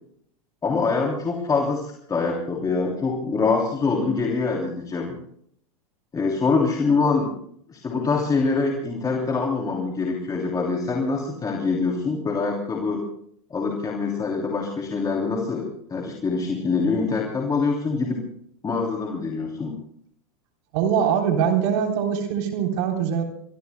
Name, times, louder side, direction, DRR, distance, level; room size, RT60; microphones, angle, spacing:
voice 1, 0.6-5.2 6.1-7.3 7.7-13.0 13.5-18.2 18.6-19.7, left 4 dB, 20° left, 0 dB, 3.1 m, -24 dB
voice 2, 20.7-23.2, right 8 dB, 60° right, 3 dB, 3.6 m, -22 dB
24.5 x 23.0 x 2.2 m, 0.66 s
hypercardioid pair, 110°, 18 cm